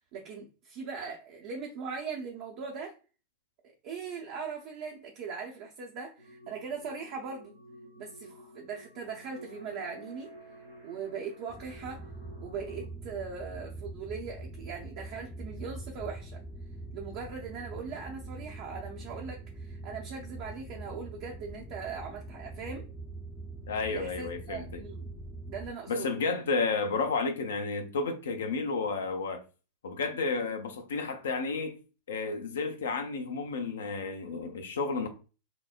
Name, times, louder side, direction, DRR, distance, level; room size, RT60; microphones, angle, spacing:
voice 1, 0.1-2.9 3.8-7.5 8.0-10.3 10.8-12.0 12.4-16.4 16.9-22.9 23.9-25.1 25.5-26.1, right 5 dB, 45° right, 0.6 m, -40 dB
sound 1, 6.2-12.9, equal, 85° right, 1.4 m, -51 dB
sound 2, 11.5-25.7, right 2 dB, 5° left, 0.5 m, -43 dB
voice 2, 23.7-24.8 25.9-29.4 29.8-31.8 32.1-35.1, left 4 dB, 65° left, 0.6 m, -31 dB
5.8 x 2.1 x 2.4 m
figure-of-eight pair, 90°, 0 cm